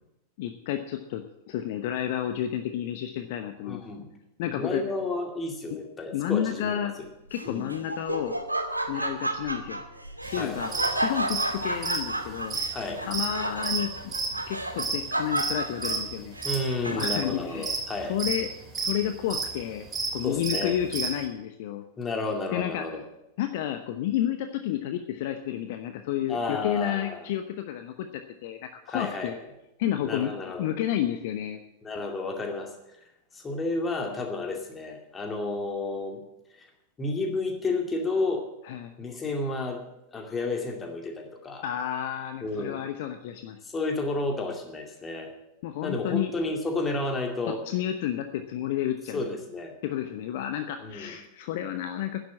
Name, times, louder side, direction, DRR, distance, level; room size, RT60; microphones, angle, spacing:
voice 1, 0.4-3.8 4.4-4.8 6.1-6.9 7.3-8.4 8.9-9.8 10.3-12.6 13.0-14.1 14.5-16.3 16.8-17.7 18.1-18.5 18.8-21.8 22.5-23.0 23.4-28.1 28.4-29.4 29.8-30.3 30.6-31.6 38.6-38.9 41.6-43.6 45.6-46.3 47.5-49.2 49.8-52.2, left 11 dB, 50° left, 7 dB, 0.9 m, -31 dB
voice 2, 3.6-4.1 4.5-7.1 7.5-7.7 10.4-10.6 12.7-13.0 16.4-18.2 20.2-20.7 22.0-23.0 26.3-27.2 28.9-29.3 30.0-30.7 31.8-32.7 33.3-36.2 36.5-36.7 37.0-38.5 39.0-39.8 40.1-41.6 42.4-42.8 43.6-45.3 45.8-47.6 49.1-49.7 50.8-51.2, left 3 dB, 20° left, 3 dB, 2.4 m, -31 dB
Laughter, 7.3-17.3, right 1 dB, 85° right, 1.1 m, -32 dB
sound 1, 10.3-10.4 10.7-10.9 11.2-15.5 15.8-16.1 16.4-16.7 17.0-17.3 17.6-18.4 18.7-18.9 19.2-19.5 19.9-20.1 20.4-21.1, right 4 dB, 20° right, 2.5 m, -30 dB
10.5 x 7.9 x 9.6 m, 0.89 s
figure-of-eight pair, 90°, 0 cm